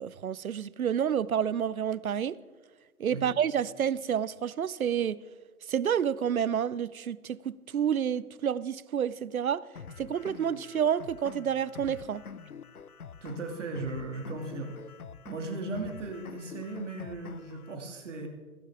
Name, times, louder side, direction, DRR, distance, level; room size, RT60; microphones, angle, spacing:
voice 1, 0.0-2.4 3.0-5.2 5.7-9.6 10.0-12.2, right 8 dB, 70° right, 0.6 m, -29 dB
sound 1, 9.8-17.8, left 6 dB, 75° left, 0.9 m, -46 dB
voice 2, 13.2-14.7 15.3-18.3, right 2 dB, 55° right, 2.8 m, -37 dB
16.0 x 14.5 x 3.7 m
figure-of-eight pair, 135°, 44 cm